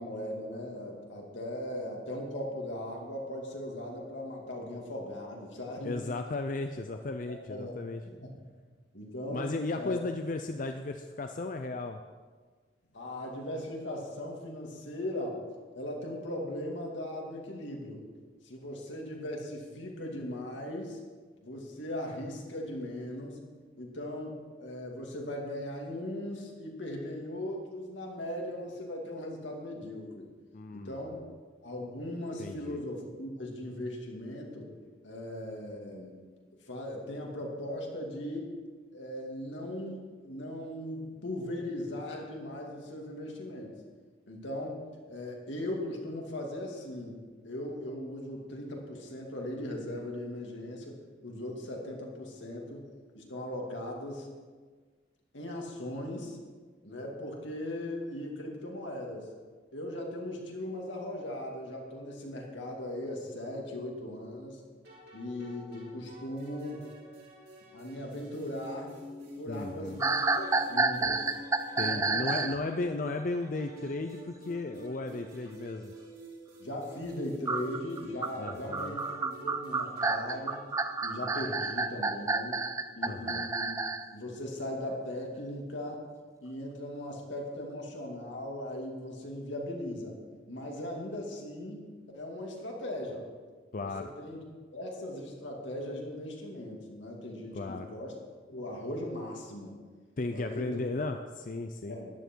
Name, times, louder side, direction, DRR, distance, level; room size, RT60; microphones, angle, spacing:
voice 1, 0.0-6.0 7.5-7.7 8.1-8.4 8.9-10.0 12.9-15.4 15.7-18.1 18.4-21.0 21.4-23.4 23.8-30.3 30.7-31.2 31.6-34.7 35.0-36.2 36.7-38.5 38.9-43.7 44.3-44.8 45.1-47.2 47.4-52.9 53.1-54.3 55.3-56.4 56.8-59.3 59.7-64.6 65.1-66.8 67.7-68.9 69.4-71.3 71.7-72.3 72.8-72.9 76.6-80.6 81.0-82.7 82.9-83.7 84.1-86.0 86.4-90.2 90.5-91.9 92.1-93.2 93.8-94.4 94.7-98.2 98.5-99.7 100.3-100.8 101.9-102.1, left 1 dB, 80° left, 0 dB, 2.4 m, -38 dB
voice 2, 5.8-8.0 9.3-12.0 30.5-31.3 32.4-32.8 69.5-70.0 71.8-75.9 78.4-78.9 83.0-83.5 93.7-94.1 97.5-97.9 100.2-102.0, left 2 dB, 45° left, 6 dB, 0.5 m, -35 dB
sound 1, 64.8-80.8, equal, 55° right, 2.9 m, -49 dB
sound 2, 70.0-72.6 77.4-84.0, right 3 dB, 15° right, 0.4 m, -30 dB
13.5 x 10.5 x 4.6 m, 1.5 s
head